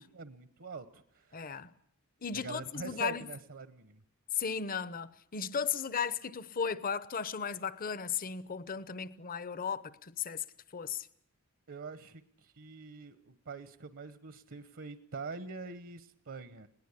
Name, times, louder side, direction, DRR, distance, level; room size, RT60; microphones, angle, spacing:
voice 1, 0.0-1.5 2.3-4.0 11.7-16.7, right 4 dB, 60° right, 1.0 m, -44 dB
voice 2, 1.3-1.7 2.2-3.2 4.3-10.4 10.7-11.1, left 6 dB, 40° left, 0.8 m, -35 dB
20.5 x 18.5 x 8.4 m
head